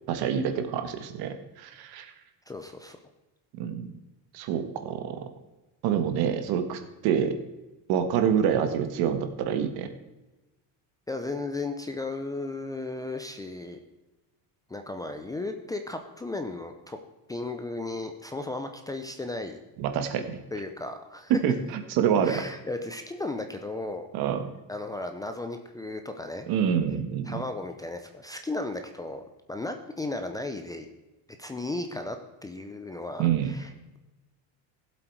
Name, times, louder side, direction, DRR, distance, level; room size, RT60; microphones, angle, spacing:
voice 1, 0.1-2.1 3.6-3.9 4.3-5.2 5.8-7.4 7.9-9.9 19.8-20.4 21.3-22.4 24.1-24.4 26.5-27.4 33.2-33.5, right 8 dB, 60° right, 8 dB, 1.6 m, -26 dB
voice 2, 2.5-3.0 11.1-13.8 14.7-17.0 17.3-19.6 20.5-21.3 22.2-24.1 24.7-26.5 27.2-30.9 31.4-34.0, left 2 dB, 10° left, 6 dB, 0.5 m, -35 dB
16.0 x 7.8 x 4.6 m, 1.1 s
cardioid pair, 165°, 42 cm